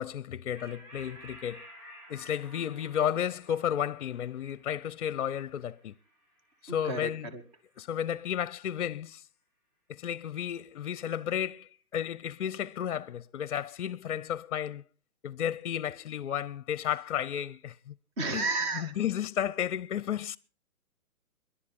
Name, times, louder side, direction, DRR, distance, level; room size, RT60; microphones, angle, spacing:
voice 1, 0.0-1.7 2.1-5.9 6.6-7.3 7.8-9.2 9.9-14.8 15.2-17.9 18.3-18.4 18.7-20.4, left 9 dB, 55° left, 0.6 m, -33 dB
sound 1, 0.5-7.4, equal, 60° right, 7.4 m, -53 dB
voice 2, 6.7-7.4 18.2-18.9, right 3 dB, 20° right, 0.9 m, -32 dB
26.0 x 11.5 x 3.6 m
hypercardioid pair, 165°, 43 cm